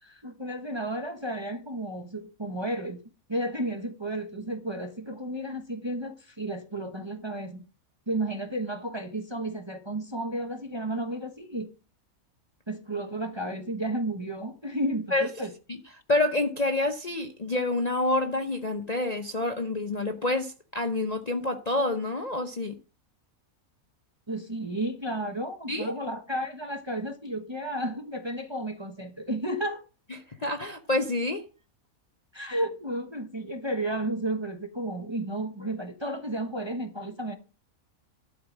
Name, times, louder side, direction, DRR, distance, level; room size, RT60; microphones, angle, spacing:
voice 1, 0.0-3.0 3.3-7.6 8.1-11.7 12.7-15.5 24.3-29.8 32.3-37.4, right 1 dB, 20° right, 1.0 m, -32 dB
voice 2, 16.1-22.8 25.7-25.9 30.4-31.4, left 2 dB, 35° left, 0.8 m, -27 dB
12.0 x 5.0 x 7.3 m
omnidirectional pair, 1.6 m